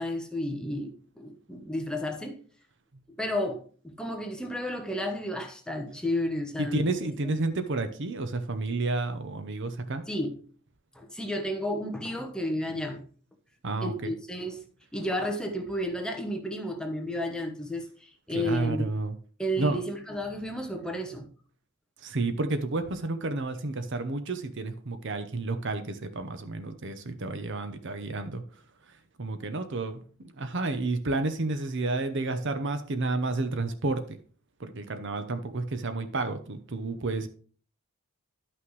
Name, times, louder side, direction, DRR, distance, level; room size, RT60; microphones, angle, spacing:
voice 1, 0.0-2.4 3.2-7.4 10.1-10.4 10.9-13.0 13.8-14.6 14.9-18.8 19.4-21.3, left 1 dB, 5° left, 0.9 m, -32 dB
voice 2, 6.6-10.0 13.6-14.1 18.3-19.1 19.6-19.8 22.0-28.4 29.2-34.2 34.6-37.3, right 2 dB, 55° right, 0.8 m, -31 dB
11.0 x 5.9 x 3.2 m
head